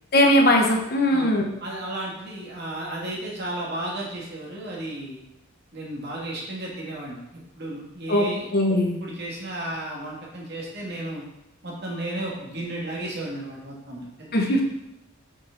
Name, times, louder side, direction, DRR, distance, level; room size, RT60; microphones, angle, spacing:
voice 1, 0.1-1.5 8.1-9.0 14.3-14.6, left 1 dB, 50° left, 1 dB, 1.2 m, -20 dB
voice 2, 1.6-5.2 5.7-11.2 11.6-14.6, right 1 dB, 55° right, -3 dB, 2.1 m, -34 dB
6.3 x 6.1 x 5.9 m, 0.87 s
head